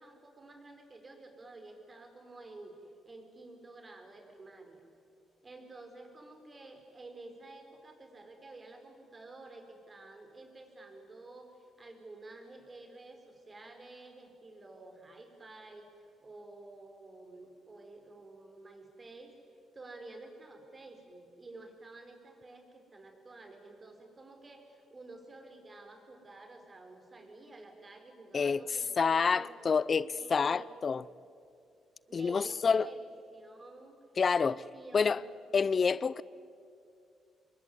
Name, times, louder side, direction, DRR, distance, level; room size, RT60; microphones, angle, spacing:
voice 1, 0.0-2.8 3.0-4.8 5.4-15.9 16.2-19.3 19.7-29.6 30.1-30.9 32.1-34.0 34.4-35.2, right 2 dB, 30° right, 5.0 m, -51 dB
voice 2, 29.0-31.0 32.1-32.9 34.2-34.6 34.9-35.2 35.5-36.2, left 5 dB, 40° left, 0.6 m, -28 dB
27.5 x 22.0 x 9.7 m
cardioid pair, 90°, 0 cm